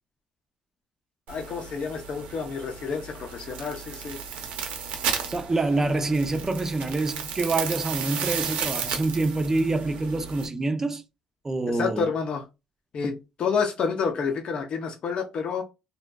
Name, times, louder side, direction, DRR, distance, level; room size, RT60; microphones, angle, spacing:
voice 1, 1.3-4.2 11.7-12.4 12.9-15.6, left 5 dB, 55° left, 0.5 m, -29 dB
sound 1, 1.3-10.5, right 7 dB, 85° right, 0.5 m, -34 dB
voice 2, 5.3-11.0 11.4-12.1, right 2 dB, 20° right, 0.4 m, -26 dB
2.6 x 2.2 x 2.2 m
cardioid pair, 105°, 2 cm